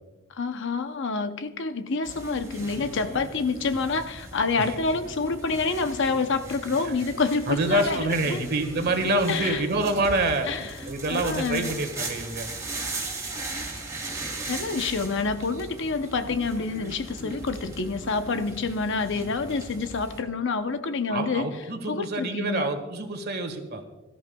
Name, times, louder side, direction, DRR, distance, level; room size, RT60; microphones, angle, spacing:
voice 1, 0.3-8.4 9.3-9.6 10.5-10.8 11.1-11.7 14.5-21.5 21.9-22.7, left 4 dB, 60° left, 0.7 m, -27 dB
sound 1, 2.0-20.2, right 2 dB, 15° right, 2.6 m, -38 dB
voice 2, 7.5-12.5 21.1-23.8, right 2 dB, 50° right, 1.6 m, -27 dB
22.0 x 13.0 x 2.3 m
head